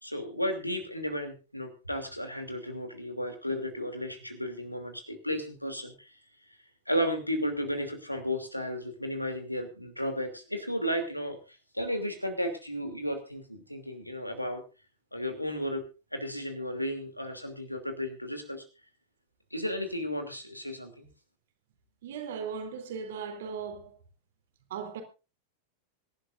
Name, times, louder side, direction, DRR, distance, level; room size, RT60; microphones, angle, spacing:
voice 1, 0.0-6.1 6.5-6.6 6.9-14.6 15.1-15.8 16.1-18.6 19.5-21.1, equal, 90° left, 2.9 m, -34 dB
voice 2, 22.0-24.0 24.7-25.0, right 6 dB, 60° right, 3.3 m, -37 dB
25.0 x 11.5 x 2.6 m
figure-of-eight pair, 90°, 0 cm